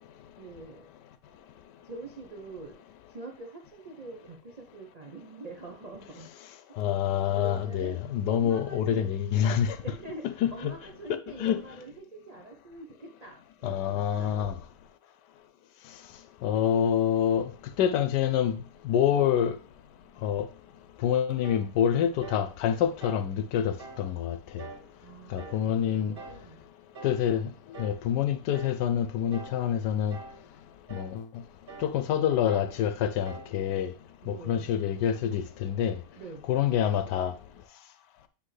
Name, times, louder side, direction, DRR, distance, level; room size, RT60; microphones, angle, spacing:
voice 1, 0.4-0.9 1.8-2.8 3.1-6.3 6.7-6.8 7.3-9.1 9.8-10.3 10.5-14.5 25.0-26.7 34.2-34.7 36.1-36.5, right 3 dB, 90° right, 0.3 m, -44 dB
voice 2, 6.8-9.8 10.4-10.7 11.4-11.6 13.6-14.5 16.4-17.5 17.8-18.6 18.8-19.6 20.2-20.5 21.0-24.6 25.3-26.1 27.0-27.5 27.8-30.2 30.9-31.2 31.8-33.9 34.3-36.0 36.5-37.3, left 9 dB, 85° left, 1.2 m, -26 dB
sound 1, 21.4-21.7 22.2-22.5 23.0-23.3 23.8-24.1 24.6-24.9 25.4-25.7 26.2-26.5 26.9-27.2 27.7-28.0 28.5-28.8 29.3-29.6 30.1-30.4 30.9-31.2 31.7-32.0 32.5-32.8 33.3-33.6, right 4 dB, 50° right, 0.8 m, -45 dB
9.8 x 3.4 x 3.2 m
omnidirectional pair, 1.8 m